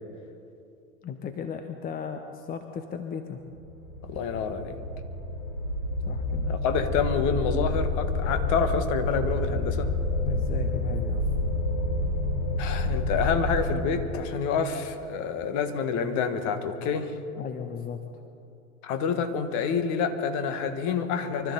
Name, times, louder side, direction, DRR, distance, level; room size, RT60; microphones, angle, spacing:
voice 1, 1.0-3.4 6.0-6.5 10.3-11.2 17.4-18.0, left 7 dB, 20° left, 7 dB, 0.8 m, -36 dB
sound 1, 3.5-13.7, left 2 dB, 60° left, 4.2 m, -29 dB
voice 2, 4.0-4.8 6.5-9.9 12.6-17.2 18.8-21.5, left 6 dB, 40° left, 8 dB, 1.6 m, -28 dB
24.5 x 13.5 x 4.0 m, 2.6 s
figure-of-eight pair, 95°, 43 cm